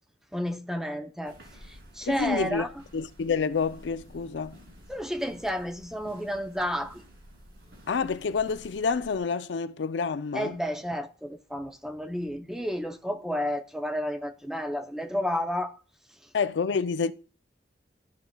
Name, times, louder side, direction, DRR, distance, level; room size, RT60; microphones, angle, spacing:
voice 1, 0.3-2.7 4.9-7.0 10.3-15.8, equal, 5° right, 0.5 m, -31 dB
sound 1, 1.2-9.2, equal, 65° right, 2.3 m, -51 dB
voice 2, 2.1-2.7 2.9-4.6 7.9-10.6 16.3-17.1, left 5 dB, 80° left, 0.4 m, -28 dB
13.0 x 5.8 x 2.2 m
head